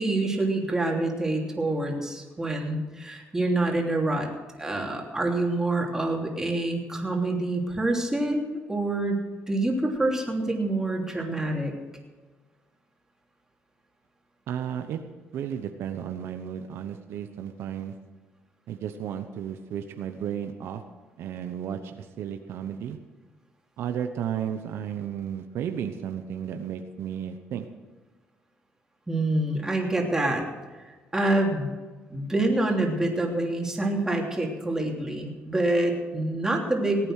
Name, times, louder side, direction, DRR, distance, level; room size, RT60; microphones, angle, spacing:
voice 1, 0.0-4.3 4.6-9.2 9.5-11.7 29.1-30.4 31.1-31.7 32.1-37.1, right 2 dB, 10° right, 0 dB, 3.1 m, -26 dB
voice 2, 14.5-15.0 15.3-17.9 18.7-20.8 21.2-23.0 23.8-27.7, right 9 dB, 75° right, 7 dB, 0.9 m, -33 dB
18.0 x 9.0 x 6.5 m, 1.3 s
cardioid pair, 95°, 4 cm